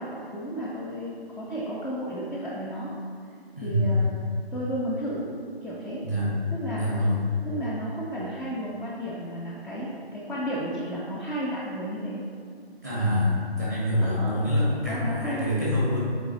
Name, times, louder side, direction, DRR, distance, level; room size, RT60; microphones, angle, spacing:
voice 1, 0.0-2.9 3.6-4.1 4.5-5.3 5.6-6.0 6.5-7.0 7.4-12.2 14.0-14.4 14.9-15.5, equal, ahead, -7 dB, 0.3 m, -33 dB
voice 2, 3.5-4.0 6.0-6.3 6.7-7.2 12.8-16.0, left 1 dB, 15° right, -7 dB, 1.0 m, -25 dB
7.2 x 3.8 x 4.0 m, 2.2 s
figure-of-eight pair, 155°, 32 cm